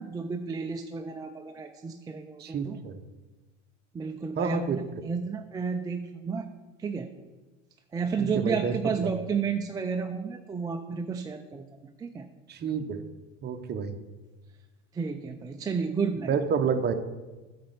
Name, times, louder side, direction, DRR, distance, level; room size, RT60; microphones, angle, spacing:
voice 1, 0.0-2.8 3.9-6.5 6.8-7.1 7.9-11.6 12.0-12.2 14.9-16.3, right 5 dB, 10° right, 4 dB, 0.3 m, -32 dB
voice 2, 2.4-3.0 4.4-4.8 8.2-9.1 12.5-13.0 13.4-14.0 16.3-16.9, right 6 dB, 30° right, 7 dB, 0.8 m, -29 dB
8.6 x 4.3 x 6.7 m, 1.2 s
supercardioid pair, 110°, 34 cm